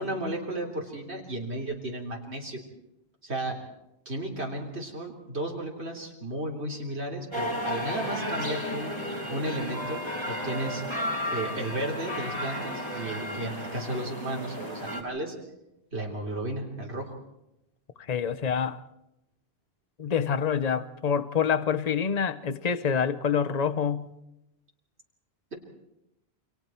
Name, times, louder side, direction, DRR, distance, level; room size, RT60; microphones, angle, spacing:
voice 1, 0.0-2.6 3.2-3.6 4.1-8.9 9.3-10.8 11.3-15.4 15.9-17.2, right 1 dB, 90° right, 3.8 m, -34 dB
sound 1, 7.3-15.0, equal, 25° left, 4.1 m, -33 dB
voice 2, 18.1-18.8 20.0-24.1, left 7 dB, 40° left, 1.0 m, -26 dB
29.5 x 26.0 x 4.5 m
omnidirectional pair, 1.1 m